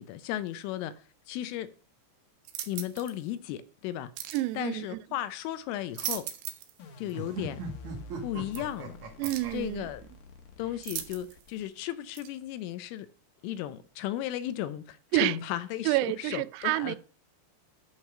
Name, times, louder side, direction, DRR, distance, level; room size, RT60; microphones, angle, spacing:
voice 1, 0.0-1.7 2.7-4.1 4.5-6.3 7.0-7.6 8.2-9.0 9.5-10.0 10.6-13.1 13.4-17.0, left 12 dB, 85° left, 3.0 m, -35 dB
sound 1, 2.4-3.2 4.2-4.5 5.7-6.8 7.1-7.2 8.5-8.6 9.2-9.6 10.8-11.5 12.1-12.3, right 12 dB, 75° right, 3.3 m, -38 dB
voice 2, 4.3-4.9 9.2-9.9 15.1-15.4 15.9-17.0, right 19 dB, 90° right, 3.4 m, -28 dB
sound 2, 6.8-11.8, left 4 dB, 60° left, 2.5 m, -48 dB
sound 3, 7.1-9.5, right 4 dB, 55° right, 2.4 m, -38 dB
11.5 x 4.8 x 7.2 m
omnidirectional pair, 6.0 m